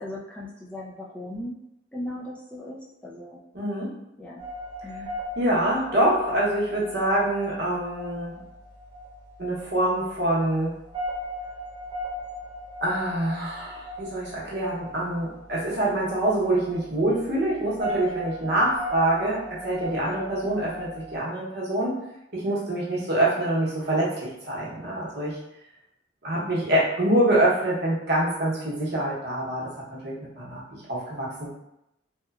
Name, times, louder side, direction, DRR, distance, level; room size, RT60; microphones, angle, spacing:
voice 1, 0.0-1.5 1.9-3.4 4.2-4.4 4.8-5.1 20.4-20.7 23.0-23.3 26.3-26.6, left 1 dB, 5° left, -6 dB, 0.3 m, -38 dB
voice 2, 3.5-3.9 5.4-8.4 9.4-10.7 12.8-22.0 22.3-25.4 26.2-30.6 30.9-31.5, right 1 dB, 60° right, -6 dB, 0.8 m, -25 dB
sound 1, 4.4-21.2, equal, 20° right, 0.8 m, -38 dB
2.8 x 2.1 x 2.3 m, 0.85 s
head